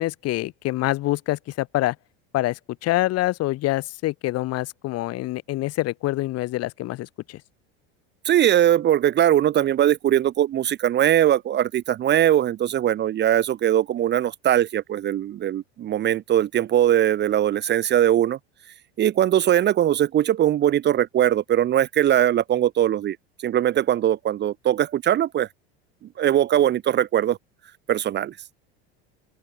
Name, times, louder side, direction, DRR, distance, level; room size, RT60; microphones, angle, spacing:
voice 1, 0.0-2.0 2.3-7.4, left 17 dB, 50° left, 2.2 m, -26 dB
voice 2, 8.2-18.4 19.0-23.2 23.4-25.5 26.2-27.4 27.9-28.3, right 11 dB, 35° right, 0.8 m, -20 dB
open air
supercardioid pair, 105°, 31 cm